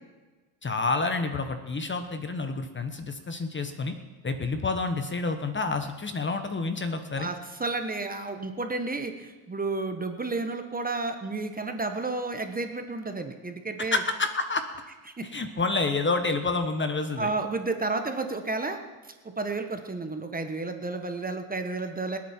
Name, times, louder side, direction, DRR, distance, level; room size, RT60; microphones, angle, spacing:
voice 1, 0.6-3.9 4.2-7.3 13.9-14.6 15.3-17.3, left 3 dB, 25° left, 8 dB, 1.2 m, -28 dB
voice 2, 7.1-14.0 15.2-15.3 17.2-18.8 19.4-22.2, right 3 dB, 20° right, 6 dB, 1.3 m, -31 dB
25.5 x 8.7 x 4.5 m, 1.3 s
cardioid pair, 100°, 48 cm